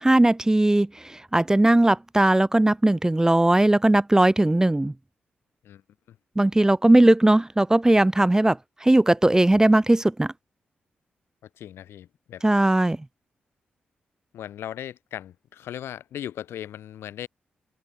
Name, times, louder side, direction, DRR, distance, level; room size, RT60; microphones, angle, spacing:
voice 1, 0.0-4.9 6.4-10.3 12.4-13.0, right 1 dB, 15° right, 0.4 m, -19 dB
voice 2, 11.6-12.4 14.3-17.3, left 11 dB, 85° left, 1.8 m, -37 dB
supercardioid pair, 40°, 4 cm